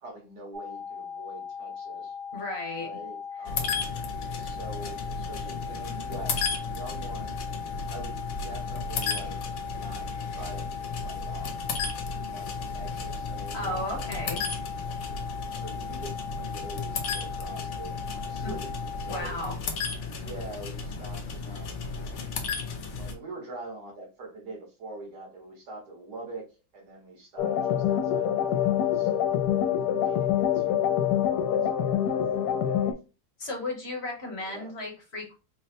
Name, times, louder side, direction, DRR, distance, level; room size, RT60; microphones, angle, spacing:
voice 1, 0.0-2.1 2.8-3.8 4.3-7.4 7.8-10.1 10.3-10.7 11.0-11.6 12.1-14.3 15.5-19.4 20.2-22.0 22.9-26.4 26.7-29.6 30.0-33.0 34.4-34.7, right 2 dB, 80° right, 0 dB, 1.9 m, -44 dB
sound 1, 0.5-19.2, left 6 dB, 55° right, 1.3 m, -39 dB
voice 2, 2.3-2.9 13.5-14.4 18.4-18.5 19.1-19.6 19.9-20.3 33.4-35.3, left 1 dB, 45° left, 1 dB, 1.1 m, -35 dB
sound 2, 3.5-23.1, left 4 dB, 60° left, 0.8 m, -34 dB
sound 3, 27.4-32.9, left 9 dB, 75° left, 1.1 m, -25 dB
3.9 x 2.0 x 4.2 m, 0.31 s
omnidirectional pair, 1.8 m